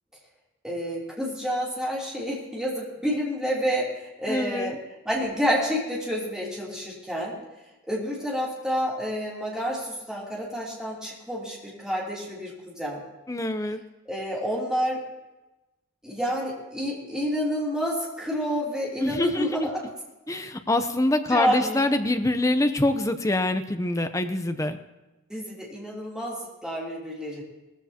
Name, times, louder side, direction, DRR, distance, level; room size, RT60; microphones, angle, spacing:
voice 1, 0.6-4.7 5.0-7.4 7.8-13.0 14.1-15.0 16.0-19.7 21.3-21.8 25.3-27.4, equal, 5° right, -5 dB, 3.0 m, -29 dB
voice 2, 4.3-4.8 13.3-13.8 19.0-19.7 20.3-24.8, left 1 dB, 15° left, 8 dB, 0.6 m, -25 dB
19.0 x 14.5 x 2.9 m, 1.0 s
head